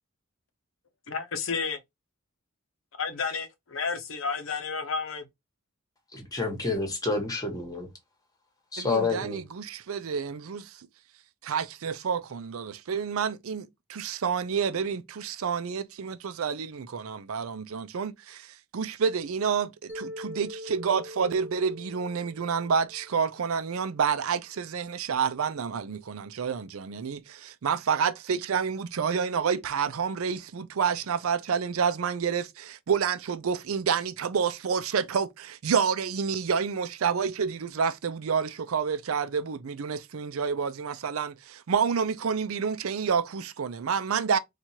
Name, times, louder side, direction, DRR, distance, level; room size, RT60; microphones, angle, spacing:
voice 1, 1.1-1.8 3.0-5.3, left 5 dB, 70° left, 0.7 m, -31 dB
voice 2, 6.1-7.9 8.7-9.4, left 3 dB, 20° left, 1.2 m, -29 dB
voice 3, 8.8-10.8 11.4-44.4, right 6 dB, 85° right, 0.5 m, -29 dB
Mallet percussion, 19.9-24.0, left 1 dB, 5° right, 1.2 m, -43 dB
4.4 x 2.4 x 2.8 m
head